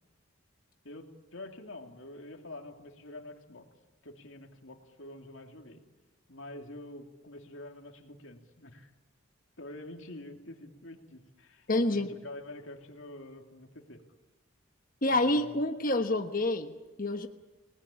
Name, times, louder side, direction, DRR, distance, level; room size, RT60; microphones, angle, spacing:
voice 1, 0.8-3.7 4.0-5.8 6.3-8.9 9.6-14.0 15.1-15.6, left 1 dB, 65° left, 4 dB, 2.8 m, -47 dB
voice 2, 11.7-12.1 15.0-17.3, left 2 dB, 40° left, 6 dB, 1.2 m, -28 dB
28.0 x 19.0 x 8.8 m, 1.2 s
head